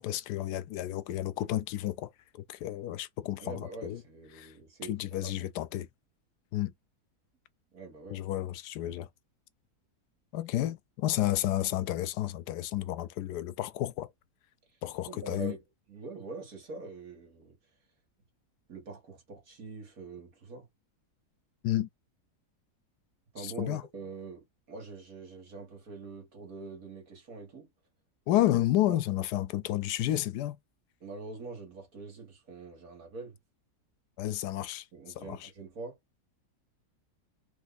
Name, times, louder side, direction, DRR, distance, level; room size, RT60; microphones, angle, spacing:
voice 1, 0.0-4.0 4.4-4.5 4.9-5.9 6.5-6.7 8.1-9.1 10.3-14.1 14.8-15.5 21.6-21.9 23.4-23.8 28.3-30.6 34.2-34.9 35.2-35.5, left 14 dB, 90° left, 1.2 m, -31 dB
voice 2, 3.4-4.9 5.2-5.5 7.7-8.2 15.1-15.6 15.9-17.6 18.7-20.7 23.3-27.7 28.4-28.5 28.9-29.0 30.1-30.2 31.0-33.4 34.9-36.0, right 4 dB, 60° right, 2.2 m, -44 dB
4.3 x 2.7 x 4.0 m
omnidirectional pair, 1.7 m